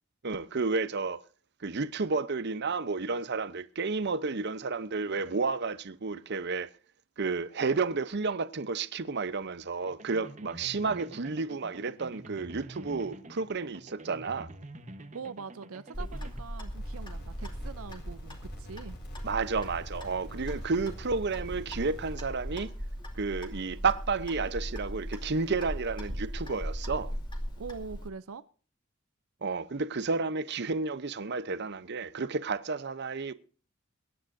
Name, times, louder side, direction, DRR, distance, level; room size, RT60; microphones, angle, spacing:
voice 1, 0.2-1.2 1.6-6.7 7.2-14.5 19.2-22.7 23.2-27.1 29.4-33.3, right 4 dB, 55° right, 0.8 m, -31 dB
sound 1, 9.8-16.4, right 1 dB, 35° right, 1.1 m, -47 dB
voice 2, 15.1-19.0 27.6-28.4, right 5 dB, 85° right, 0.6 m, -43 dB
Clock, 15.9-28.1, equal, 20° left, 2.4 m, -39 dB
sound 2, 16.7-22.2, equal, 55° left, 3.4 m, -48 dB
23.5 x 10.0 x 2.7 m
head